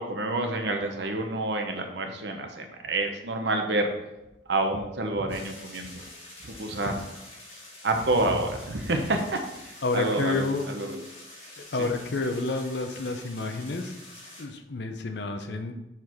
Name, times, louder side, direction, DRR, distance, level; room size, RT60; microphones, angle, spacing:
voice 1, 0.0-3.9 4.5-6.0 6.4-7.0 7.8-9.4 9.9-11.0 11.8-11.9, right 2 dB, 70° right, 4 dB, 0.9 m, -28 dB
sound 1, 5.3-14.4, left 1 dB, 35° left, 2.2 m, -47 dB
voice 2, 9.8-10.7 11.6-14.0 14.4-15.7, left 3 dB, 70° left, 7 dB, 0.7 m, -29 dB
6.0 x 4.9 x 4.5 m, 0.97 s
head